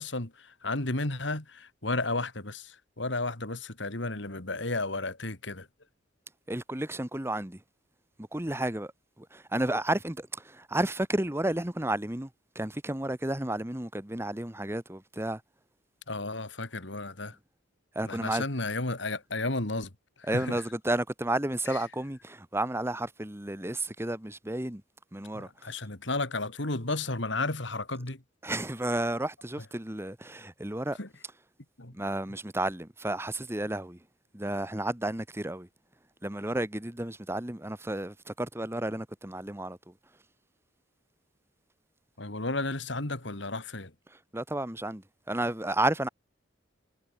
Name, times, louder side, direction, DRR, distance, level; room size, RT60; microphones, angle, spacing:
voice 1, 0.0-5.7 16.1-17.4 18.0-19.9 20.2-20.7 21.7-21.8 25.3-28.2 31.0-31.1 31.8-31.9 42.2-43.9, left 2 dB, 65° left, 2.9 m, -33 dB
voice 2, 6.5-7.6 8.3-8.9 9.3-12.3 12.5-15.4 17.9-18.4 20.3-24.8 25.1-25.5 28.4-31.0 31.9-34.0 34.3-35.7 36.2-39.8 44.3-46.1, right 1 dB, 15° right, 1.4 m, -32 dB
head